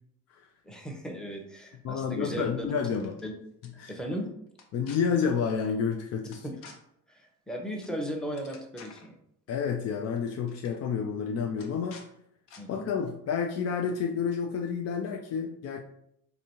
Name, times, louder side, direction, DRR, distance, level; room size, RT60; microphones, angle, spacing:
voice 1, 0.6-2.7 3.2-3.3 3.7-4.3 6.4-6.5 7.1-9.2 12.6-12.8, equal, ahead, 1 dB, 0.8 m, -36 dB
voice 2, 1.8-3.1 3.8-3.9 4.7-6.4 9.5-12.0 12.7-15.8, left 6 dB, 35° left, 3 dB, 0.4 m, -30 dB
sound 1, 2.8-3.2 3.6-3.7 4.5-5.0 6.3-6.8 7.8-8.0 8.2-9.1 10.0-10.2 10.5-10.7 11.6-12.1 12.5-12.6, left 5 dB, 60° left, 0.9 m, -50 dB
4.1 x 2.6 x 2.8 m, 0.74 s
hypercardioid pair, 60°, 46 cm